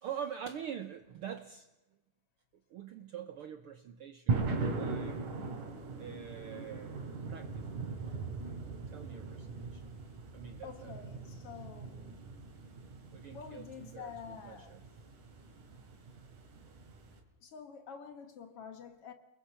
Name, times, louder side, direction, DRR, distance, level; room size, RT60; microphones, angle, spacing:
voice 1, 0.0-1.7 2.7-5.3 6.0-8.0 8.9-9.9 10.3-11.0 13.1-14.8, right 8 dB, 70° right, 1.4 m, -45 dB
sound 1, 4.3-17.2, right 4 dB, 85° right, 4.1 m, -40 dB
voice 2, 10.6-12.2 13.3-14.8 17.4-19.1, left 7 dB, 55° left, 2.2 m, -48 dB
30.0 x 20.5 x 5.8 m
omnidirectional pair, 3.5 m